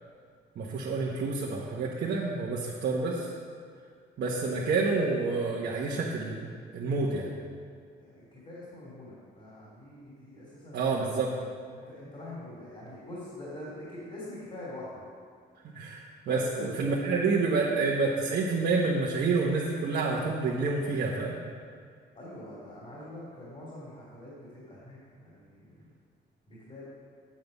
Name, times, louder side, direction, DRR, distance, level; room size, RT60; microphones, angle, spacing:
voice 1, 0.6-3.3 4.2-6.5 6.7-7.3 10.7-11.3 15.7-21.3, right 3 dB, 65° right, -5 dB, 1.3 m, -28 dB
voice 2, 8.0-11.1 11.7-15.1 16.3-16.7 22.1-25.9 26.5-26.8, left 1 dB, 35° left, -7 dB, 3.0 m, -44 dB
8.7 x 7.9 x 5.4 m, 2.1 s
cardioid pair, 95°, 18 cm